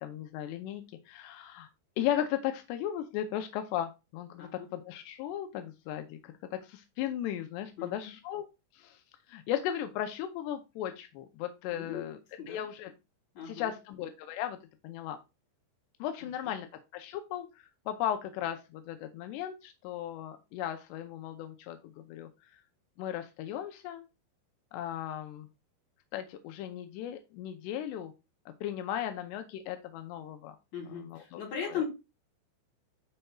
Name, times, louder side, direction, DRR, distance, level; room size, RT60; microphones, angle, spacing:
voice 1, 0.0-1.7 2.0-8.5 8.7-9.0 9.3-12.2 12.5-12.9 13.5-14.6 14.8-15.2 16.0-16.7 16.9-22.3 23.0-24.1 24.7-25.5 26.1-28.1 28.6-30.6 30.9-31.4 31.7-31.8, left 11 dB, 85° left, 7 dB, 2.4 m, -36 dB
voice 2, 7.8-8.1 11.7-12.1 12.4-12.6 13.4-13.7 30.7-31.9, left 6 dB, 40° left, -2 dB, 3.8 m, -38 dB
12.0 x 4.4 x 2.3 m, 0.26 s
omnidirectional pair, 5.4 m